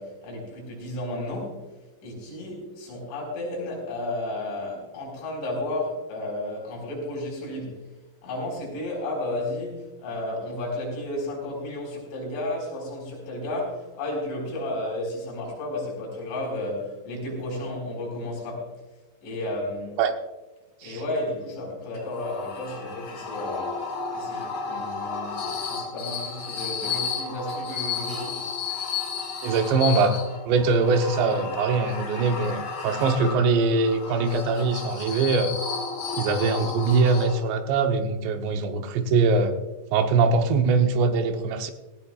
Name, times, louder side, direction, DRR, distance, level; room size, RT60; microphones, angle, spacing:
voice 1, 0.0-1.7 2.0-7.8 8.2-18.7 19.2-20.0 20.8-28.5, left 1 dB, 80° left, -2 dB, 7.0 m, -33 dB
sound 1, 21.9-37.7, left 5 dB, 60° left, 1.3 m, -33 dB
voice 2, 29.4-30.2 30.5-35.5 36.2-39.5 39.9-41.7, right 4 dB, 75° right, 6 dB, 3.0 m, -22 dB
17.5 x 15.5 x 2.4 m, 1.1 s
omnidirectional pair, 5.4 m